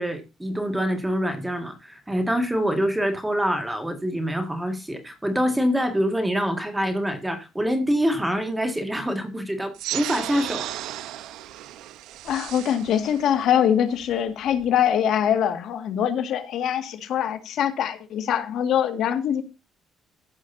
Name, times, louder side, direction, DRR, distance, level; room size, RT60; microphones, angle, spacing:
voice 1, 0.0-10.7, equal, 5° right, 1.9 m, -25 dB
sound 1, 9.7-14.8, right 13 dB, 85° right, 0.9 m, -35 dB
voice 2, 12.2-19.4, left 9 dB, 60° left, 1.9 m, -23 dB
14.5 x 11.5 x 2.7 m
cardioid pair, 175°, 0 cm